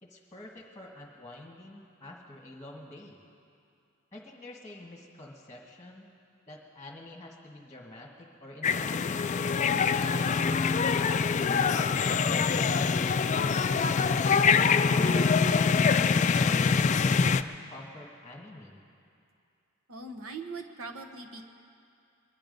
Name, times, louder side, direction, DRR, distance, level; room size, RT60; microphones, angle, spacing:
voice 1, 0.0-3.2 4.1-6.1 6.5-9.2 9.9-11.2 11.5-14.0 14.8-15.9 16.4-18.8, left 1 dB, 15° left, -1 dB, 1.4 m, -47 dB
sound 1, 8.6-17.4, left 5 dB, 35° left, 0.3 m, -24 dB
voice 2, 19.9-21.5, right 3 dB, 75° right, 4 dB, 1.2 m, -41 dB
23.0 x 10.5 x 5.3 m, 2.5 s
head